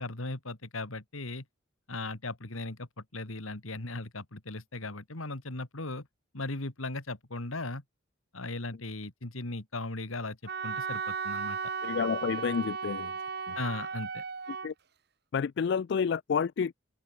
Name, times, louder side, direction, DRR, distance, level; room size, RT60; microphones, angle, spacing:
voice 1, 0.0-1.4 1.9-2.9 3.1-6.1 6.3-7.8 8.3-10.4 10.6-11.7 13.5-14.2, left 2 dB, 90° left, 2.6 m, -37 dB
Wind instrument woodwind instrument, 10.5-14.7, right 5 dB, 50° right, 1.3 m, -35 dB
voice 2, 11.8-13.1 13.5-13.6 14.6-14.7 15.3-16.7, left 6 dB, 55° left, 0.3 m, -29 dB
head